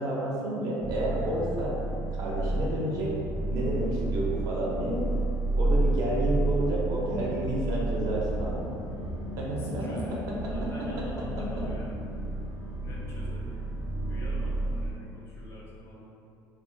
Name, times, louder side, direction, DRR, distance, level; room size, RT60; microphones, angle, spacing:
voice 1, 0.0-1.8 2.2-3.1 3.5-5.0 5.6-8.6 9.4-9.9, right 1 dB, 55° right, -4 dB, 0.5 m, -30 dB
sound 1, 0.8-14.9, right 2 dB, 70° left, 0.7 m, -31 dB
voice 2, 9.5-12.1 12.8-13.6 14.1-16.1, left 1 dB, 35° left, -5 dB, 0.4 m, -46 dB
2.3 x 2.1 x 2.6 m, 2.5 s
cardioid pair, 155°, 8 cm